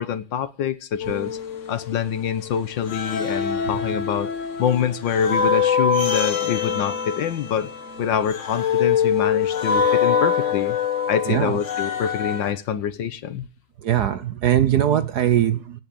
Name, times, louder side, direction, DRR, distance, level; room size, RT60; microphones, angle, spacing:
voice 1, 0.0-1.4 1.7-4.3 4.6-7.7 8.0-10.8 11.1-13.5, left 8 dB, 65° left, 1.5 m, -25 dB
sound 1, 1.0-2.5 2.9-12.5, left 7 dB, 40° left, 1.3 m, -24 dB
voice 2, 11.3-11.6 13.8-15.8, right 11 dB, 60° right, 1.2 m, -20 dB
17.0 x 6.5 x 8.5 m
omnidirectional pair, 2.3 m